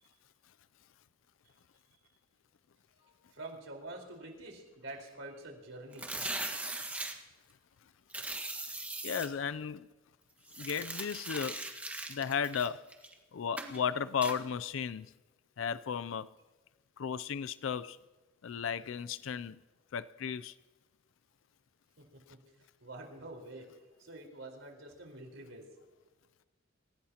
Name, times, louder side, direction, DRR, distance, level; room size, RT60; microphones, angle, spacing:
voice 1, 3.3-6.1 22.1-22.2 22.8-23.6 24.0-25.6, right 2 dB, 75° right, 1 dB, 4.3 m, -46 dB
sound 1, 5.9-7.1 8.1-9.3 10.5-13.1 13.6-13.8 14.2-14.4, right 2 dB, 5° right, 1.4 m, -39 dB
voice 2, 9.0-9.9 10.6-11.7 12.1-12.9 13.3-15.1 15.6-16.3 17.0-18.0 18.4-19.6 19.9-20.5, left 7 dB, 75° left, 15 dB, 0.4 m, -35 dB
27.5 x 16.5 x 2.9 m, 1.2 s
head